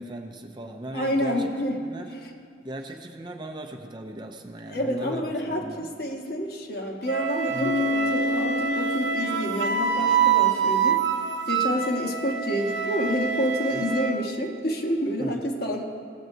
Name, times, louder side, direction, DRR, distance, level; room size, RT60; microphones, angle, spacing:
voice 1, 0.0-1.5 1.8-2.1 2.6-5.9 7.5-7.7 13.8-13.9 15.2-15.5, right 1 dB, 25° right, 3 dB, 0.5 m, -38 dB
voice 2, 0.9-1.8 2.2-2.3 4.7-11.0 11.5-15.8, equal, 55° left, 1 dB, 1.1 m, -28 dB
Wind instrument woodwind instrument, 7.1-14.2, right 7 dB, 80° right, 0.7 m, -26 dB
Bass guitar, 7.6-11.3, left 2 dB, 80° left, 0.6 m, -30 dB
17.0 x 7.6 x 2.7 m, 2.4 s
head